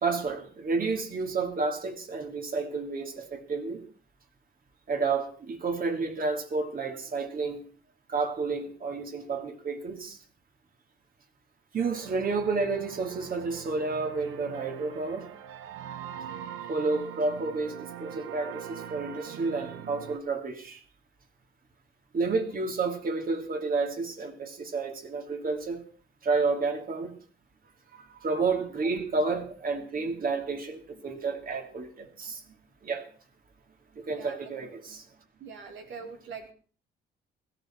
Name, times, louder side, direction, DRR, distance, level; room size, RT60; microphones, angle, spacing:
voice 1, 0.0-3.8 4.9-7.6 8.1-10.2 11.7-15.3 16.7-20.8 22.1-25.8 26.2-27.1 28.2-32.4 32.8-33.1 34.0-35.0, right 4 dB, 45° right, 2.7 m, -30 dB
sound 1, 11.8-20.2, right 9 dB, 90° right, 1.1 m, -42 dB
voice 2, 34.2-34.5 35.4-36.5, right 5 dB, 70° right, 2.6 m, -43 dB
16.5 x 14.0 x 4.4 m
cardioid pair, 90°, 20 cm